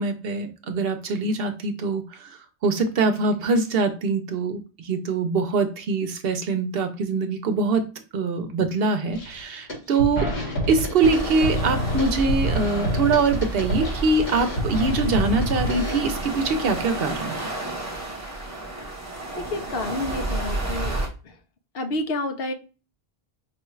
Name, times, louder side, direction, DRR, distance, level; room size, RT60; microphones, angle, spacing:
voice 1, 0.0-2.3 2.6-7.9 8.1-10.2 10.7-17.3, right 4 dB, 70° right, 8 dB, 0.8 m, -23 dB
sound 1, 9.1-9.4 9.7-16.0, equal, 85° left, 2.0 m, -28 dB
sound 2, 11.0-21.1, right 2 dB, 15° right, 0.9 m, -31 dB
voice 2, 19.3-21.0 21.2-21.3 21.7-22.5, left 2 dB, 65° left, 6 dB, 0.8 m, -29 dB
5.1 x 2.3 x 3.1 m, 0.34 s
omnidirectional pair, 1.1 m